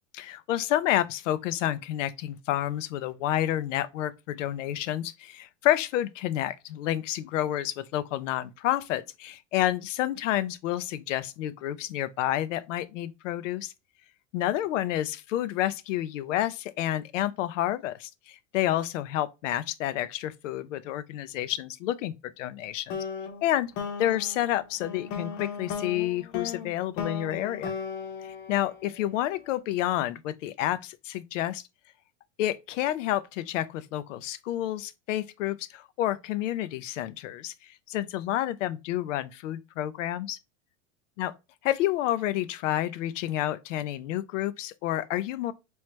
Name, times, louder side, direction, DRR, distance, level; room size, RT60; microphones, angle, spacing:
voice 1, 0.1-13.7 14.3-23.0 23.4-23.7 24.0-27.7 28.2-31.6 32.4-40.4 41.2-41.3 41.6-45.5, left 13 dB, 85° left, 0.6 m, -29 dB
sound 1, 22.9-29.3, left 6 dB, 40° left, 0.8 m, -36 dB
3.2 x 3.2 x 3.0 m
supercardioid pair, 160°, 36 cm